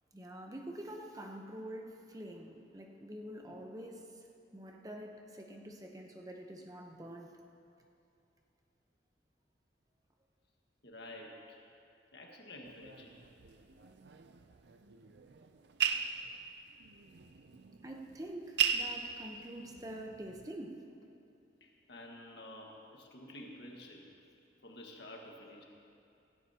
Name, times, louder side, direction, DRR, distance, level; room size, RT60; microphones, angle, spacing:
voice 1, 0.1-4.1 4.5-7.4 13.8-13.9 17.8-20.8, right 1 dB, 20° right, 2 dB, 0.9 m, -46 dB
voice 2, 10.8-11.6 12.1-13.2 19.1-19.2 21.6-24.1 24.6-25.6, left 1 dB, 70° left, 0 dB, 1.7 m, -50 dB
sound 1, 12.6-20.5, right 8 dB, 70° right, 0.6 m, -38 dB
16.0 x 16.0 x 2.9 m, 2.6 s
head